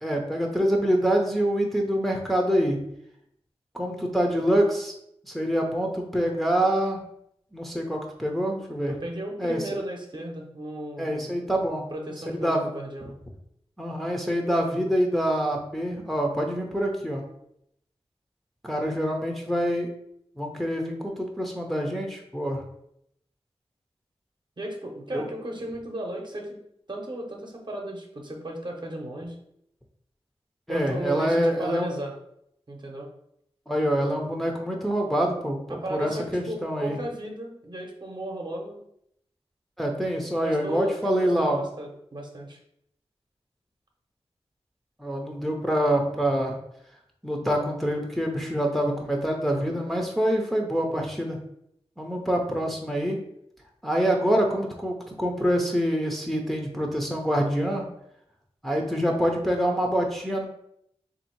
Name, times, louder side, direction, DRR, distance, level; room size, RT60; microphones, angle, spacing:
voice 1, 0.0-2.8 3.7-4.9 5.2-7.0 7.5-8.9 9.4-9.6 11.0-11.8 12.4-12.6 13.8-17.2 18.6-19.9 20.4-22.6 25.1-25.2 30.7-32.0 33.7-37.0 39.8-41.6 45.0-46.5 47.2-51.4 52.0-53.2 53.8-57.8 58.6-60.4, equal, ahead, 0 dB, 0.6 m, -26 dB
voice 2, 8.9-11.3 11.9-13.1 24.6-26.5 26.9-29.4 30.7-32.1 32.7-33.1 35.7-38.8 40.4-42.6 49.4-49.8, right 1 dB, 45° right, 0 dB, 0.8 m, -35 dB
3.5 x 2.7 x 4.4 m, 0.75 s
wide cardioid pair, 75°, 11 cm